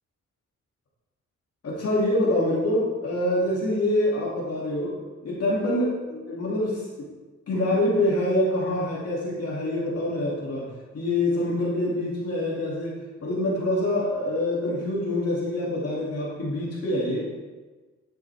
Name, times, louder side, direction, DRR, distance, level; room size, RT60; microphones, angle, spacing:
voice 1, 1.6-5.0 5.2-7.1 7.5-17.3, left 1 dB, 55° left, -5 dB, 2.6 m, -26 dB
11.0 x 8.8 x 3.5 m, 1.3 s
wide cardioid pair, 145°, 29 cm